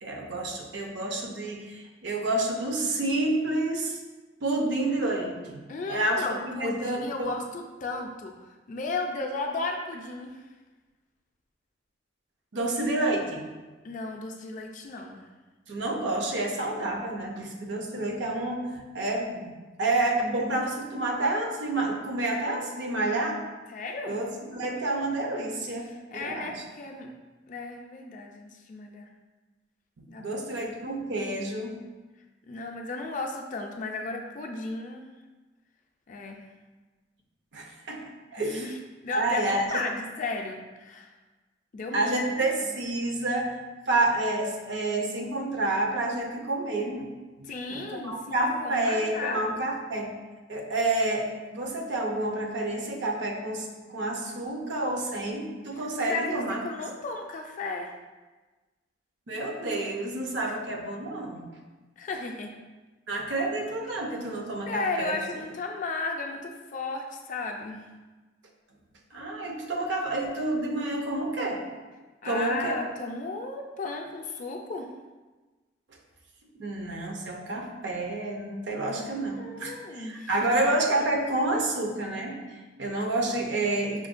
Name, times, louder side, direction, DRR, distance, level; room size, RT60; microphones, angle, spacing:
voice 1, 0.0-4.0 4.4-5.6 5.9-7.3 12.5-13.5 15.7-19.5 19.8-23.4 24.1-25.9 26.1-26.6 30.0-31.7 37.5-38.7 39.1-39.8 41.9-43.5 43.9-47.1 47.7-50.1 50.5-56.6 59.3-61.4 63.1-65.2 69.1-71.6 72.2-72.8 76.6-84.1, right 2 dB, 65° right, 1 dB, 0.5 m, -29 dB
voice 2, 5.7-10.5 13.8-15.3 23.7-24.2 25.8-27.1 27.5-29.1 30.1-30.8 32.5-35.1 36.1-36.5 38.4-38.8 39.0-41.1 41.7-42.2 42.6-42.8 47.5-49.4 56.1-57.9 60.4-60.6 62.0-62.5 64.7-67.9 72.2-74.9 79.3-80.6, left 3 dB, 40° left, 2 dB, 0.3 m, -35 dB
5.7 x 2.1 x 2.5 m, 1.2 s
head